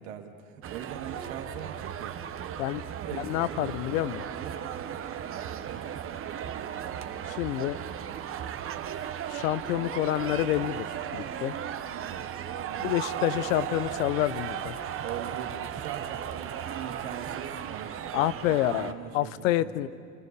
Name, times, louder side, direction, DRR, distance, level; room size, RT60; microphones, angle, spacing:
voice 1, 0.0-2.2 3.0-3.7 4.3-4.6 5.7-5.9 12.7-12.9 14.8-19.7, right 9 dB, 75° right, 4 dB, 2.2 m, -41 dB
sound 1, 0.6-18.9, right 9 dB, 35° right, 1.1 m, -36 dB
voice 2, 3.2-4.2 7.2-7.8 9.3-11.6 12.8-14.8 18.1-19.9, left 14 dB, 80° left, 16 dB, 0.9 m, -28 dB
29.5 x 14.5 x 6.8 m, 2.4 s
supercardioid pair, 120°, 40 cm